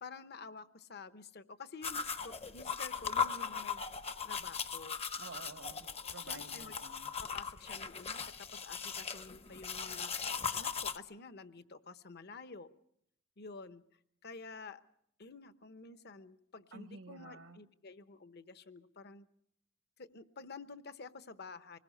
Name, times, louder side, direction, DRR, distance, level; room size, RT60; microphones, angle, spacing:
voice 1, 0.0-3.8 4.2-5.0 6.2-6.8 7.2-12.7 13.4-13.8 14.2-14.8 15.2-19.3 20.0-21.8, left 4 dB, 55° left, 12 dB, 1.0 m, -50 dB
sound 1, 1.8-11.0, left 6 dB, 30° left, 0.8 m, -38 dB
voice 2, 5.2-7.1 16.7-17.6, right 3 dB, 80° right, 9 dB, 1.4 m, -51 dB
25.0 x 20.5 x 6.5 m, 0.73 s
head